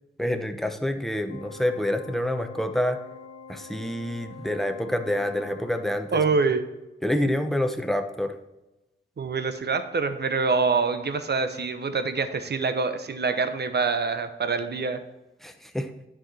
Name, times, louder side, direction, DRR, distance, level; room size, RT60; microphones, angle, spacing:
voice 1, 0.2-3.0 3.5-6.2 7.0-8.3 15.4-15.9, left 1 dB, ahead, 6 dB, 0.9 m, -27 dB
Organ, 1.3-6.3, left 5 dB, 90° left, 1.1 m, -46 dB
voice 2, 6.1-6.6 9.2-15.0, right 4 dB, 55° right, 9 dB, 0.9 m, -25 dB
10.5 x 4.8 x 4.3 m, 1.0 s
cardioid pair, 60°, 20 cm